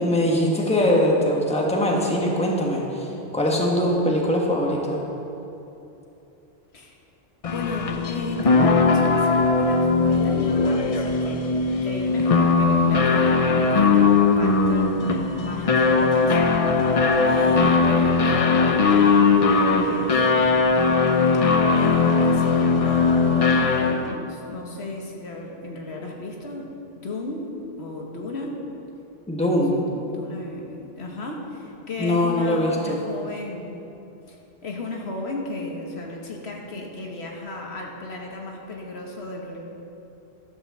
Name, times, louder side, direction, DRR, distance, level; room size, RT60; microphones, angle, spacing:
voice 1, 0.0-5.0 29.3-29.7 32.0-33.0, left 1 dB, 5° left, -2 dB, 1.4 m, -22 dB
voice 2, 7.4-11.4 11.8-16.4 17.3-20.7 21.7-26.7 26.9-28.6 29.3-33.8 34.3-39.6, left 2 dB, 70° left, 0 dB, 1.5 m, -34 dB
sound 1, 7.4-24.2, left 4 dB, 40° left, 0.6 m, -19 dB
12.0 x 7.0 x 6.9 m, 2.9 s
omnidirectional pair, 1.1 m